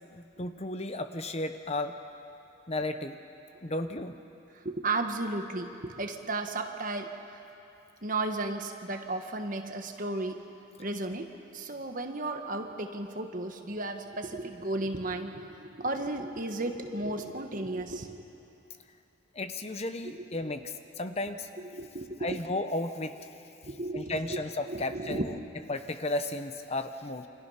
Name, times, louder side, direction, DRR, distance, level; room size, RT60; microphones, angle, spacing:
voice 1, 0.0-2.0 2.7-3.2 3.6-4.2 19.3-21.5 22.2-23.2 23.9-25.3 25.7-27.3, left 2 dB, 30° left, 8 dB, 0.9 m, -34 dB
voice 2, 4.5-7.4 8.0-10.4 10.8-18.2 20.0-20.3 21.7-22.4 23.6-24.4 24.7-25.5, right 2 dB, 40° right, 5 dB, 1.5 m, -34 dB
28.5 x 26.0 x 5.8 m, 2.9 s
head